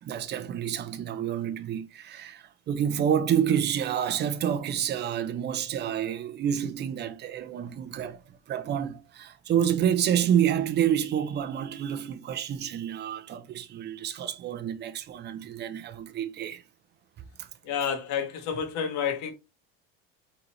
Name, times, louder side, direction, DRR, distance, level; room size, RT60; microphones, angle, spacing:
voice 1, 0.0-16.6 17.4-17.5, right 9 dB, 35° right, 0.7 m, -28 dB
voice 2, 17.6-19.3, left 7 dB, 60° left, 1.5 m, -29 dB
4.2 x 4.0 x 3.1 m
cardioid pair, 135°, 30 cm